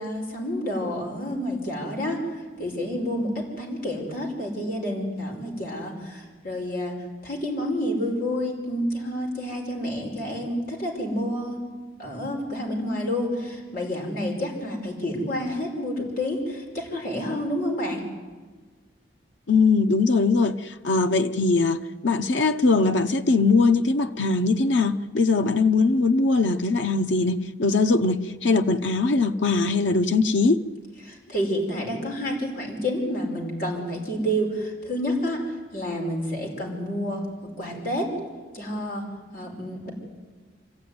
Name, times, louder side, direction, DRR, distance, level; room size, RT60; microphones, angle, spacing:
voice 1, 0.0-2.2 2.6-7.0 7.2-11.6 12.0-18.0 31.0-38.1 38.5-39.1 39.3-39.9, equal, 50° left, 5.2 m, -29 dB
voice 2, 19.5-30.6, left 3 dB, 85° left, 1.0 m, -21 dB
25.0 x 15.0 x 9.6 m
head